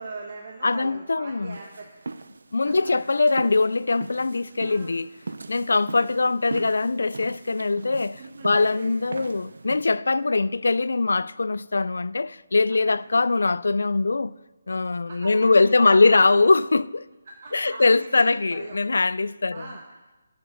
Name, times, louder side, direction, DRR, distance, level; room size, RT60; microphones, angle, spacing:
voice 1, 0.0-2.1 2.6-3.0 4.4-4.9 6.2-6.3 8.2-9.2 10.2-10.3 12.7-13.0 15.1-16.5 17.3-18.8 19.5-19.8, right 3 dB, 40° right, 1.1 m, -41 dB
voice 2, 0.6-1.6 2.5-5.1 5.5-14.3 14.7-17.1 17.5-19.7, left 3 dB, 80° left, 0.3 m, -22 dB
sound 1, 1.5-10.0, right 3 dB, 80° right, 0.5 m, -40 dB
18.5 x 6.9 x 3.9 m
hypercardioid pair, 170°, 0 cm